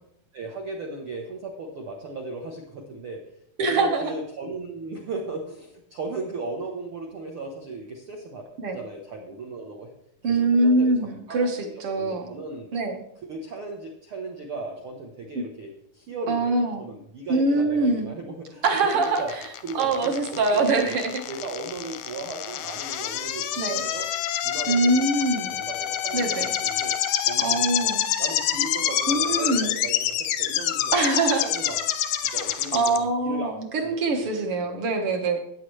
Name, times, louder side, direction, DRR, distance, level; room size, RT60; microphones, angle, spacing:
voice 1, 0.3-3.2 3.6-8.4 8.7-9.9 10.4-11.0 11.3-11.5 11.9-12.7 13.2-18.9 19.2-19.3 19.6-21.0 21.3-23.5 23.8-24.1 24.4-25.0 25.3-26.9 27.2-27.9 28.2-30.9 31.4-31.8 32.2-34.8, right 2 dB, 85° right, 1 dB, 1.2 m, -36 dB
voice 2, 3.6-4.1 8.6-8.8 10.2-12.3 12.7-13.0 16.3-16.8 17.3-18.1 18.6-19.4 19.7-21.2 23.6-23.8 24.7-25.6 26.1-26.5 27.4-28.0 29.1-29.7 30.9-31.5 32.7-35.4, right 2 dB, 60° right, 4 dB, 1.5 m, -23 dB
sound 1, 18.6-33.0, left 11 dB, 80° left, 1.6 m, -27 dB
14.5 x 9.2 x 3.2 m, 0.73 s
omnidirectional pair, 4.2 m